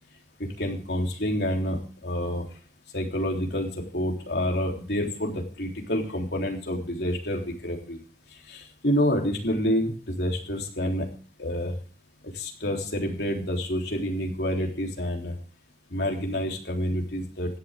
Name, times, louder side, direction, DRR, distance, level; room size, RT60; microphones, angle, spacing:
voice 1, 0.4-2.5 2.9-8.0 8.5-11.1 11.4-11.8 12.2-15.3 15.9-17.6, equal, 65° left, 1 dB, 3.6 m, -28 dB
16.5 x 11.5 x 3.7 m, 0.40 s
head